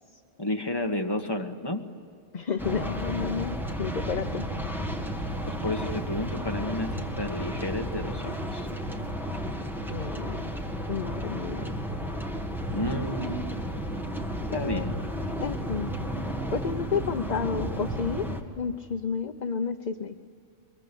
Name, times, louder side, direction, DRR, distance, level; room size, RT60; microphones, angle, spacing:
voice 1, 0.4-1.8 5.4-8.7 12.7-13.5 14.5-15.0, left 1 dB, 20° left, 4 dB, 1.6 m, -31 dB
voice 2, 2.3-4.4 9.9-10.5 10.9-11.7 14.5-14.8 15.4-15.9 16.5-18.3 18.6-20.2, left 6 dB, 40° left, 8 dB, 0.8 m, -31 dB
sound 1, 2.6-18.4, equal, ahead, 1.9 m, -33 dB
24.5 x 22.5 x 9.9 m, 2.5 s
omnidirectional pair, 1.3 m